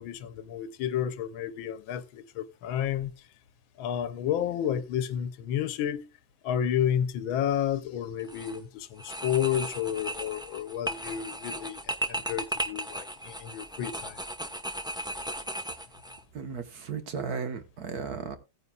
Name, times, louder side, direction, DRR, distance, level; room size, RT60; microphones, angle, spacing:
voice 1, 0.0-3.1 3.8-6.1 6.4-14.2, left 10 dB, 85° left, 1.6 m, -31 dB
sound 1, 8.2-8.6 9.0-16.2, equal, 5° right, 0.4 m, -36 dB
voice 2, 16.3-18.4, right 5 dB, 55° right, 1.6 m, -35 dB
17.0 x 9.5 x 2.3 m
omnidirectional pair, 2.1 m